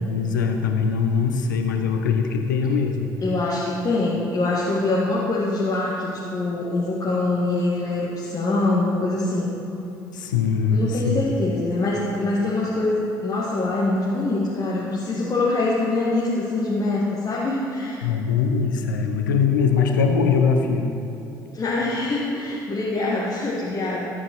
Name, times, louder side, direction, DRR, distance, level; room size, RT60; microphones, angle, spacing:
voice 1, 0.1-3.1 10.1-11.2 18.0-20.9, left 5 dB, 80° left, 5 dB, 0.8 m, -21 dB
voice 2, 3.2-9.5 10.7-18.0 21.5-24.0, left 2 dB, 35° left, -6 dB, 1.8 m, -24 dB
13.5 x 8.6 x 4.6 m, 2.8 s
figure-of-eight pair, 55°, 10 cm